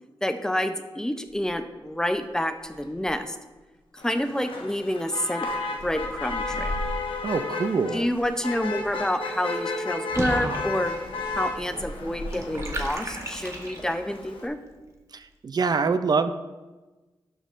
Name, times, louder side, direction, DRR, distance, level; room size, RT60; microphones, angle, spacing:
voice 1, 0.2-3.4 3.9-5.5 5.8-6.8 7.9-10.9 11.3-14.6, left 1 dB, 5° left, 8 dB, 0.5 m, -28 dB
sound 1, 1.3-1.6 2.1-3.2 4.1-7.5 7.8-12.9, left 1 dB, 50° left, 1.5 m, -40 dB
Motor vehicle (road), 4.0-14.5, left 3 dB, 75° left, 0.9 m, -34 dB
voice 2, 7.2-8.1 15.1-16.3, right 5 dB, 50° right, 11 dB, 0.4 m, -25 dB
Water / Bathtub (filling or washing), 10.1-14.2, right 1 dB, 30° right, 1.0 m, -35 dB
11.5 x 5.5 x 2.5 m, 1.2 s
wide cardioid pair, 105°, 9 cm